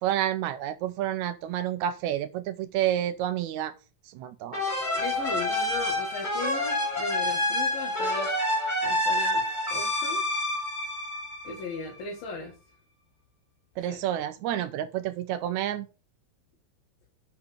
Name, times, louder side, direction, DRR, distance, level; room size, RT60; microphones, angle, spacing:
voice 1, 0.0-3.7 4.1-4.6 13.8-15.9, right 11 dB, 85° right, 1.7 m, -29 dB
sound 1, 4.5-12.0, left 1 dB, 15° left, 2.1 m, -28 dB
voice 2, 5.0-8.3 8.8-9.4 9.7-10.2 11.4-12.5 13.9-14.0, left 4 dB, 75° left, 3.9 m, -37 dB
8.8 x 5.8 x 5.5 m
omnidirectional pair, 4.2 m